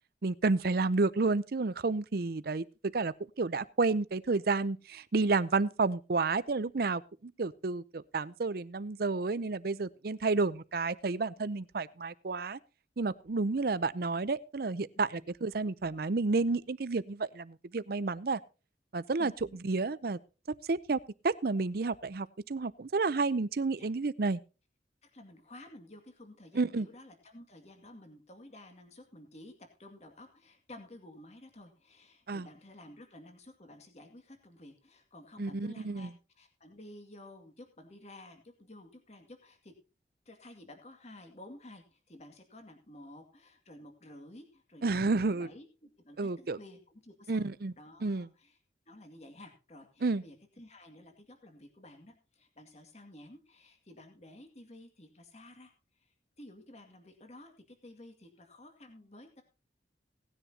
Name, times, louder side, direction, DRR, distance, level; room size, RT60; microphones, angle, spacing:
voice 1, 0.2-2.6 2.9-12.6 13.0-18.4 18.9-19.3 19.6-20.2 20.7-24.4 26.5-26.9 32.3-32.5 35.4-36.1 44.8-45.5 46.2-46.6 47.3-47.7 48.0-48.3 50.0-50.2, right 3 dB, 55° right, 17 dB, 0.6 m, -31 dB
voice 2, 14.9-15.3 19.2-19.6 23.8-23.9 25.0-29.5 29.8-39.7 40.3-45.7 46.0-47.5 47.8-48.6 48.9-59.4, left 1 dB, 40° left, 5 dB, 2.2 m, -52 dB
18.0 x 10.0 x 2.8 m, 0.32 s
head